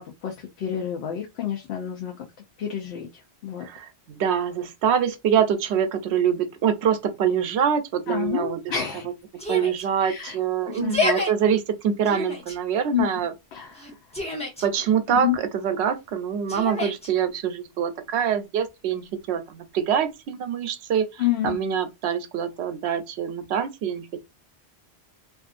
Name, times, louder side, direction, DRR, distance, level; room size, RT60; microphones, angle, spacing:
voice 1, 0.0-2.1 2.6-3.1 3.4-3.7 8.1-9.1 10.0-10.4 10.8-11.0 12.9-13.2 13.5-13.8 15.1-15.4 21.2-21.6, left 11 dB, 70° left, 0.8 m, -28 dB
voice 2, 3.6-8.7 9.5-13.3 14.6-24.2, right 8 dB, 70° right, 0.8 m, -25 dB
Yell, 9.4-9.9 10.7-11.3 12.0-12.6 13.7-14.7 16.5-17.1, left 3 dB, 5° left, 0.7 m, -28 dB
2.5 x 2.4 x 2.4 m
omnidirectional pair, 1.2 m